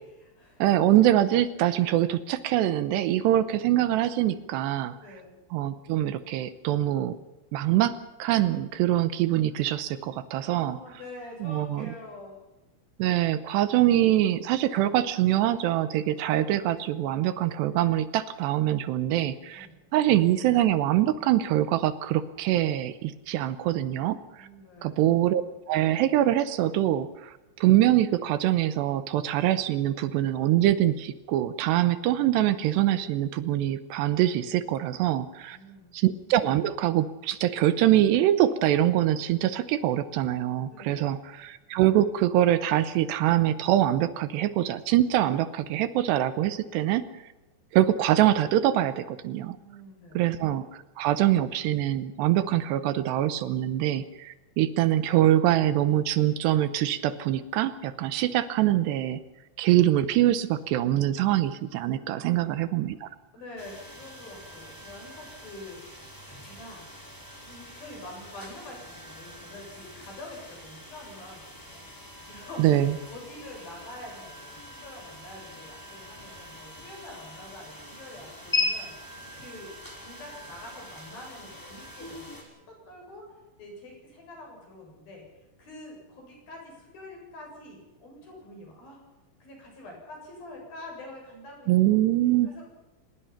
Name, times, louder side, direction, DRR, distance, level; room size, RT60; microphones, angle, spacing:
voice 1, 0.0-0.6 5.0-5.4 10.4-12.4 19.5-19.8 24.4-25.0 35.3-35.9 40.7-41.1 49.6-50.2 62.1-62.8 63.3-66.9 67.4-72.7 73.1-79.7 80.0-82.4 82.7-83.3 83.6-89.0 89.4-91.7 92.4-92.7, left 1 dB, 45° left, 0 dB, 9.1 m, -46 dB
voice 2, 0.6-5.0 5.5-7.2 7.5-7.9 8.2-10.8 11.4-11.9 13.0-19.7 19.9-24.5 24.8-25.4 25.7-35.6 35.9-47.0 47.7-49.6 50.1-59.2 59.6-63.1 72.6-73.0 91.7-92.5, right 13 dB, 75° right, 13 dB, 2.6 m, -24 dB
sound 1, 63.6-82.4, left 2 dB, 5° left, 4.5 m, -40 dB
25.5 x 20.5 x 5.9 m, 1.0 s
omnidirectional pair, 5.7 m